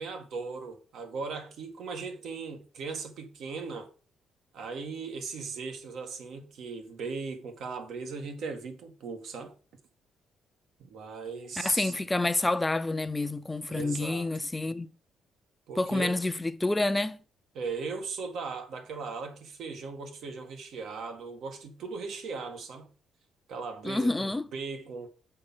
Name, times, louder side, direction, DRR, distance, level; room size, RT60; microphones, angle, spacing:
voice 1, 0.0-3.9 4.5-9.5 10.8-11.9 13.7-14.3 15.7-16.2 17.5-22.9 23.5-25.1, right 4 dB, 70° right, 1.8 m, -38 dB
voice 2, 11.6-14.9 15.8-17.2 23.8-24.4, left 2 dB, 15° left, 0.6 m, -28 dB
6.6 x 4.6 x 5.6 m
cardioid pair, 90°, 0 cm